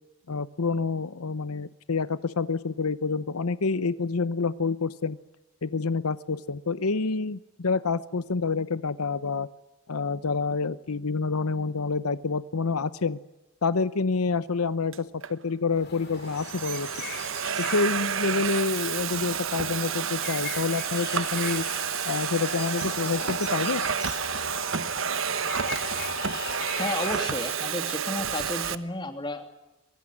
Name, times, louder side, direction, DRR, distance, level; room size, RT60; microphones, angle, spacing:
voice 1, 0.3-5.2 5.6-9.5 9.9-13.2 13.6-16.9 17.6-21.6 22.0-23.8, left 4 dB, 85° left, 15 dB, 0.8 m, -28 dB
Domestic sounds home sounds, 14.9-15.3 16.0-28.8, right 7 dB, 60° right, 1.1 m, -30 dB
sound 1, 15.7-27.6, left 6 dB, 45° left, 2.5 m, -39 dB
voice 2, 26.8-29.5, left 1 dB, 20° left, 6 dB, 2.9 m, -32 dB
23.5 x 22.5 x 9.6 m, 0.96 s
head